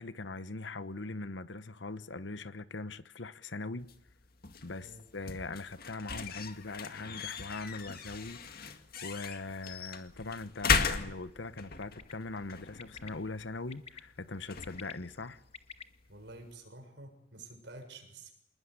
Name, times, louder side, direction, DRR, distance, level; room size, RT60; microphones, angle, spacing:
voice 1, 0.0-3.9 4.6-15.4, left 3 dB, 65° left, 1.1 m, -41 dB
sound 1, 3.8-16.5, left 5 dB, 50° left, 2.0 m, -38 dB
Bird, 11.8-12.1 12.8-13.1 13.7-14.0 14.5-15.8, left 6 dB, 30° left, 1.1 m, -48 dB
voice 2, 16.1-18.3, right 2 dB, 60° right, 7.1 m, -49 dB
27.0 x 20.0 x 9.8 m
head